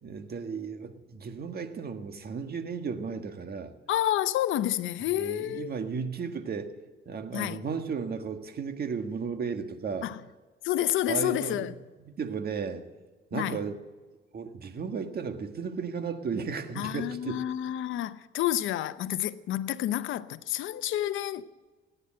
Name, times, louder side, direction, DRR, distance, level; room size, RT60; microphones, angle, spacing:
voice 1, 0.0-3.7 5.2-6.7 7.0-10.1 11.1-11.7 12.2-12.8 13.3-13.8 14.3-17.4, right 5 dB, 50° right, 1.6 m, -34 dB
voice 2, 3.9-5.7 7.3-7.6 10.0-10.2 10.6-11.7 13.3-13.6 16.8-21.5, left 12 dB, 80° left, 0.7 m, -29 dB
18.0 x 9.9 x 7.7 m
cardioid pair, 90°, 20 cm